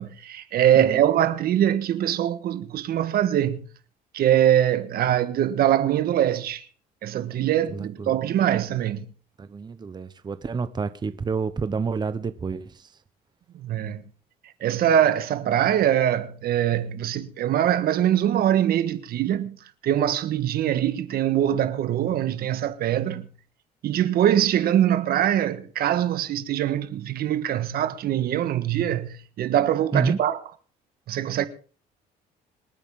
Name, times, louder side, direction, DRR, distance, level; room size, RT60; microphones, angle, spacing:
voice 1, 0.0-3.7 4.1-6.7 7.0-9.0 13.5-14.0 14.6-19.6 19.8-23.3 23.8-30.4 31.1-31.5, right 11 dB, 65° right, 1.4 m, -23 dB
voice 2, 7.7-8.1 9.4-13.0 29.9-30.2, right 5 dB, 25° right, 1.0 m, -29 dB
26.0 x 9.1 x 3.8 m
cardioid pair, 110°, 17 cm